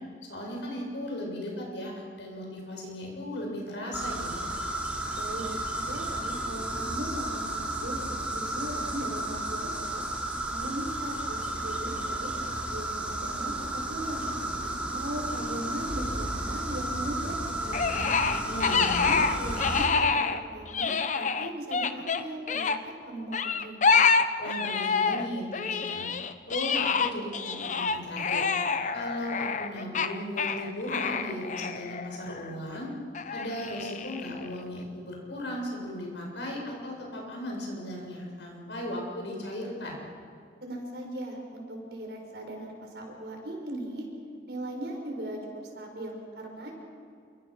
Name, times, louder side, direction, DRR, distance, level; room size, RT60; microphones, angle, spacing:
voice 1, 0.3-4.5 18.4-19.2 24.4-26.1 26.5-28.5 28.9-32.9 33.3-40.0, left 1 dB, 80° left, -1 dB, 7.1 m, -36 dB
sound 1, 3.9-19.8, right 1 dB, 10° right, 3.5 m, -33 dB
voice 2, 5.1-10.0 10.5-12.3 12.5-14.3 14.6-18.1 18.7-23.8 40.6-44.1 44.5-45.4 45.8-46.7, right 1 dB, 65° right, 1 dB, 6.0 m, -38 dB
sound 2, 17.7-20.4 20.7-22.8 23.3-25.3 25.5-32.5 33.1-34.5, left 5 dB, 45° left, 0.8 m, -27 dB
28.0 x 24.0 x 6.4 m, 2.2 s
head